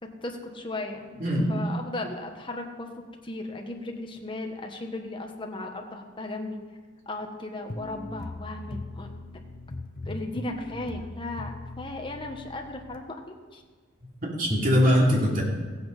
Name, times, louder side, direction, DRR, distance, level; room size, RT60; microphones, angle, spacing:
voice 1, 0.0-1.2 1.5-2.9 3.2-6.6 7.1-9.1 10.0-13.6, left 2 dB, 25° left, 3 dB, 1.4 m, -36 dB
voice 2, 1.2-1.6 14.4-15.4, equal, 45° right, -3 dB, 3.1 m, -21 dB
sound 1, 7.7-13.0, left 2 dB, 45° left, 0.9 m, -39 dB
15.5 x 8.7 x 5.4 m, 1.4 s
head